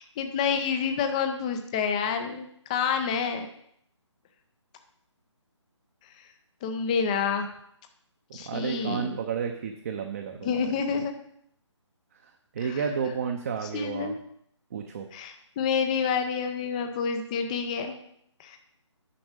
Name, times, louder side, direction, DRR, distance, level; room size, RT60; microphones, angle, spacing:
voice 1, 0.0-3.5 6.6-7.5 8.3-9.2 10.4-11.1 12.7-12.8 13.6-14.2 15.1-18.0 18.4-18.6, left 6 dB, 15° left, 6 dB, 0.5 m, -28 dB
voice 2, 8.3-10.6 12.5-14.1 14.7-15.0, right 6 dB, 30° right, 4 dB, 0.7 m, -31 dB
9.9 x 6.1 x 5.0 m, 0.69 s
figure-of-eight pair, 150°, 16 cm